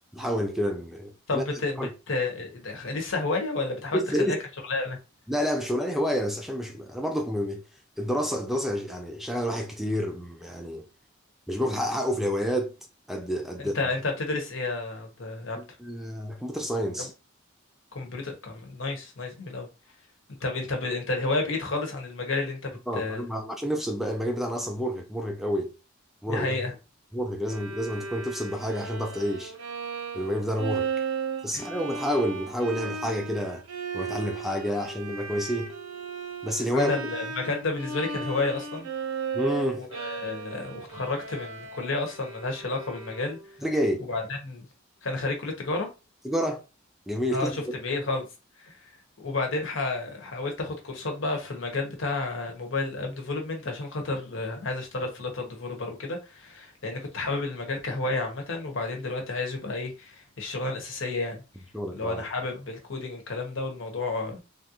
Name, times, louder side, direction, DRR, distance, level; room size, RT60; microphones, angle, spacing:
voice 1, 0.1-1.5 1.8-1.9 3.9-4.4 5.3-7.6 8.0-10.8 11.5-12.7 13.1-13.8 15.6-17.1 22.9-25.7 26.2-26.5 27.1-29.5 30.1-30.9 31.4-33.6 33.9-35.7 36.4-37.0 39.3-39.8 43.6-44.0 46.2-46.6 47.1-47.6 61.7-62.2, equal, ahead, 0.3 m, -29 dB
voice 2, 1.3-4.4 4.7-5.0 13.6-15.6 17.0-17.1 17.9-19.7 20.4-23.3 26.3-26.8 31.5-31.6 36.7-38.9 39.7-43.4 44.1-44.7 45.0-45.9 47.3-48.3 48.6-48.9 49.2-61.4 61.9-64.4, left 3 dB, 65° left, 0.9 m, -31 dB
Bowed string instrument, 27.5-43.6, right 5 dB, 90° right, 0.7 m, -36 dB
3.3 x 2.4 x 2.8 m
head